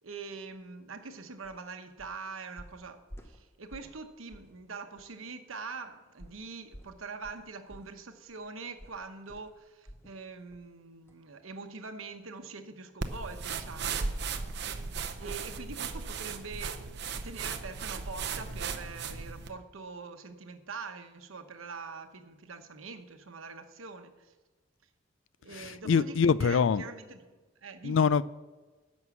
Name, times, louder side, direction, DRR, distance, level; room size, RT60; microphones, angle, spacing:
voice 1, 0.0-14.0 15.2-24.3 25.4-28.1, right 4 dB, 85° right, 1.0 m, -44 dB
sound 1, 1.4-1.6 2.0-2.2 2.6-4.0 4.3-4.6 5.0-5.1 6.2-10.2 10.5-10.7 11.1-11.2, equal, 10° left, 0.7 m, -51 dB
sound 2, 13.0-19.5, right 5 dB, 55° right, 0.7 m, -36 dB
voice 2, 25.5-26.8 27.8-28.2, left 6 dB, 70° left, 0.4 m, -24 dB
11.0 x 6.4 x 7.1 m
head